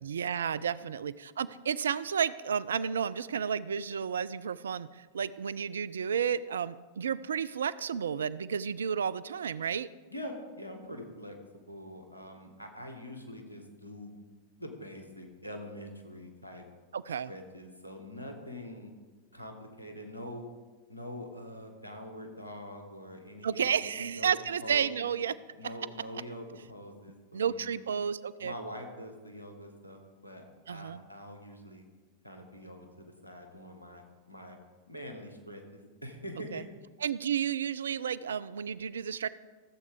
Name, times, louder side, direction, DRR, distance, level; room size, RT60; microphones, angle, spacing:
voice 1, 0.0-9.9 16.9-17.3 23.4-25.3 27.3-28.5 30.7-31.0 36.5-36.6 37.0-39.3, right 7 dB, 65° right, 17 dB, 0.3 m, -32 dB
voice 2, 10.1-14.1 14.6-16.7 17.1-18.9 19.3-20.5 20.9-24.3 24.6-25.2 25.6-27.7 28.4-31.8 32.2-34.6 34.9-36.6, equal, 85° left, 4 dB, 1.4 m, -44 dB
15.0 x 7.6 x 3.6 m, 1.3 s
figure-of-eight pair, 90°, 0 cm